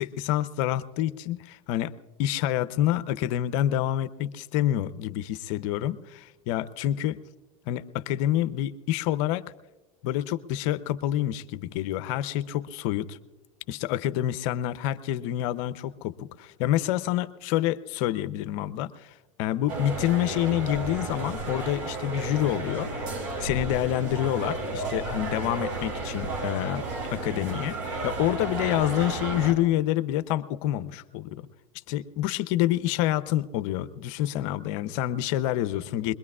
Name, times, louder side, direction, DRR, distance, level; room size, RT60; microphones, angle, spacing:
voice 1, 0.0-1.9 2.2-7.2 7.7-9.4 10.0-13.2 13.7-22.9 23.4-26.9 27.1-31.5 31.9-36.1, left 13 dB, 60° left, 13 dB, 0.7 m, -27 dB
sound 1, 19.7-29.5, right 2 dB, 70° right, 4.7 m, -33 dB
22.0 x 21.0 x 2.4 m, 1.2 s
hypercardioid pair, 105°, 18 cm